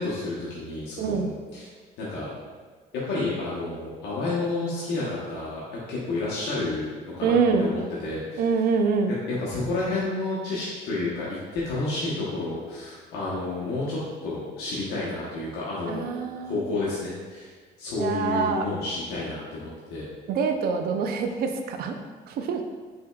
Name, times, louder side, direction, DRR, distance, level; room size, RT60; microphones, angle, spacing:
voice 1, 0.0-1.7 2.0-2.3 2.9-5.6 5.9-8.4 9.3-16.0 16.4-17.5 17.8-20.1, left 2 dB, 80° left, -7 dB, 0.9 m, -30 dB
voice 2, 1.0-1.3 7.2-7.7 8.4-9.1 15.9-16.6 18.0-18.7 20.3-22.0 22.3-22.6, right 5 dB, 65° right, 5 dB, 0.5 m, -25 dB
5.2 x 3.6 x 2.2 m, 1.4 s
cardioid pair, 110°, 17 cm